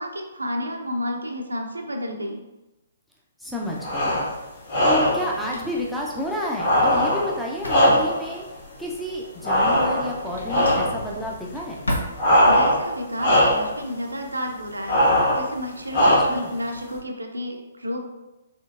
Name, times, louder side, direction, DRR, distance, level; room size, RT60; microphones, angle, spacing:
voice 1, 0.0-2.4 12.4-18.1, equal, 80° right, 2 dB, 0.5 m, -31 dB
voice 2, 3.4-4.2 4.8-8.4 8.8-11.8 16.2-16.5, equal, ahead, -4 dB, 0.5 m, -30 dB
Drawer open or close, 3.5-12.8, equal, 75° left, 0.8 m, -37 dB
sound 1, 3.8-4.3 4.7-5.3 6.6-8.3 9.4-10.2 10.5-11.0 12.2-12.9 13.2-13.7 14.9-15.5 15.9-16.5, equal, 45° left, 1.5 m, -20 dB
4.3 x 3.1 x 2.5 m, 1.0 s
figure-of-eight pair, 125°, 0 cm